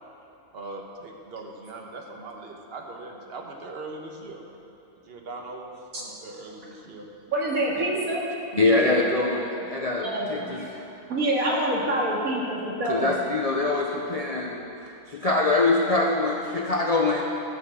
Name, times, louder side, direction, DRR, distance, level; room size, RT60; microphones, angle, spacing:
voice 1, 0.5-4.4 5.0-7.1 8.5-9.1, right 3 dB, 45° right, 1 dB, 1.2 m, -38 dB
voice 2, 7.3-8.2 10.0-10.5 11.1-13.1, right 1 dB, 65° right, -4 dB, 2.4 m, -26 dB
voice 3, 8.6-10.9 12.8-14.6 15.1-17.2, left 3 dB, 45° left, 0 dB, 0.5 m, -24 dB
13.5 x 5.6 x 7.7 m, 2.9 s
omnidirectional pair, 1.6 m